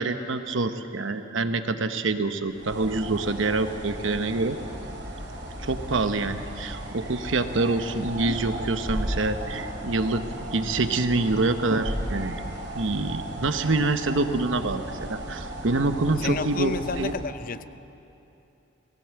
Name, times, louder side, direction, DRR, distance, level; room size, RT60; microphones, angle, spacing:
voice 1, 0.0-4.6 5.6-10.3 10.5-12.4 12.7-17.2, right 3 dB, 80° right, 9 dB, 1.0 m, -26 dB
sound 1, 2.4-17.1, right 1 dB, 65° right, 4.3 m, -35 dB
voice 2, 16.2-17.7, left 5 dB, 45° left, 13 dB, 0.5 m, -31 dB
19.5 x 17.0 x 7.8 m, 2.8 s
head